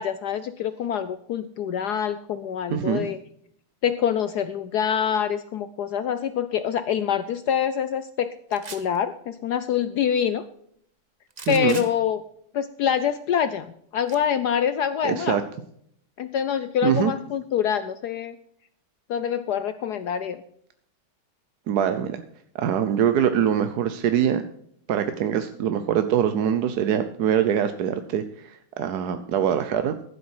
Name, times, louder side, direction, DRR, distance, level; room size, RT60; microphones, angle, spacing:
voice 1, 0.0-3.2 3.8-10.4 11.5-12.2 12.5-15.4 16.2-18.4 19.1-20.4, left 8 dB, 70° left, 13 dB, 0.9 m, -25 dB
voice 2, 2.7-3.1 11.5-11.8 15.0-15.4 16.8-17.1 21.7-22.2 22.5-24.4 24.9-29.9, right 9 dB, 60° right, 9 dB, 1.1 m, -23 dB
sound 1, 8.5-9.0 11.3-11.9 14.1-14.2, right 4 dB, 35° right, 0.6 m, -39 dB
14.5 x 8.2 x 4.7 m, 0.67 s
omnidirectional pair, 2.3 m